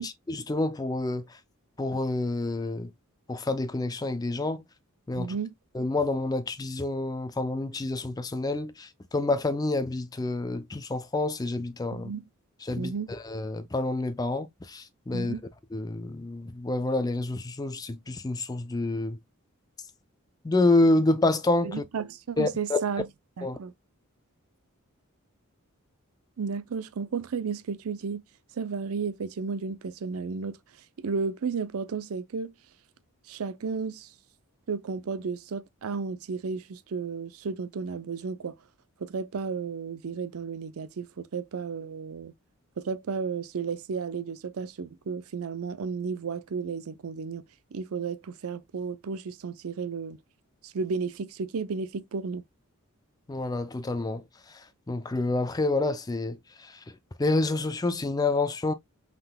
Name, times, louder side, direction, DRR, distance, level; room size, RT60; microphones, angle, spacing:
voice 1, 0.0-1.4 1.8-2.9 3.3-4.6 5.1-5.3 5.7-12.1 12.6-15.3 15.7-19.2 20.4-21.8 22.4-22.8 23.4-23.6 53.3-58.7, left 2 dB, 15° left, 0.3 m, -28 dB
voice 2, 5.2-5.5 11.9-12.2 12.8-13.1 15.1-15.4 21.6-23.1 23.4-23.7 26.4-28.2 28.5-30.6 31.0-32.5 33.3-34.1 34.7-38.5 39.0-42.3 42.8-47.4 47.7-50.2 50.6-52.4, right 5 dB, 75° right, 0.5 m, -33 dB
5.5 x 3.7 x 2.2 m
head